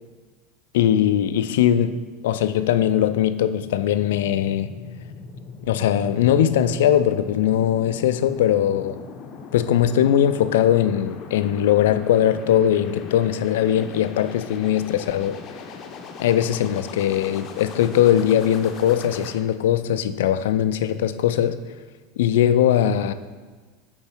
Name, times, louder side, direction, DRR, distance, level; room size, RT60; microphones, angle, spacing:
voice 1, 0.7-2.0 2.2-4.8 5.6-9.0 9.5-15.4 16.2-21.6 22.2-23.1, left 10 dB, 80° left, 12 dB, 0.3 m, -20 dB
sound 1, 2.8-19.3, left 5 dB, 45° left, 0.6 m, -39 dB
5.6 x 4.4 x 4.4 m, 1.4 s
hypercardioid pair, 100°, 0 cm